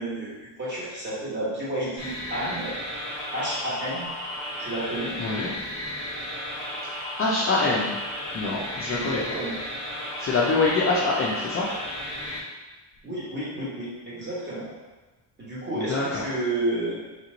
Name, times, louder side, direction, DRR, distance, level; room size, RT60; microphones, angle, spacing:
voice 1, 0.0-2.7 3.3-4.1 4.6-5.2 8.9-9.6 13.0-14.7 15.4-17.0, right 1 dB, 25° right, -8 dB, 1.3 m, -31 dB
sound 1, 2.0-12.4, left 1 dB, 15° left, 1.0 m, -34 dB
voice 2, 5.2-5.5 7.2-8.0 8.3-9.2 10.2-11.7 15.7-16.2, left 3 dB, 30° left, -6 dB, 0.4 m, -25 dB
3.3 x 3.0 x 3.8 m, 1.2 s
cardioid pair, 175°, 45 cm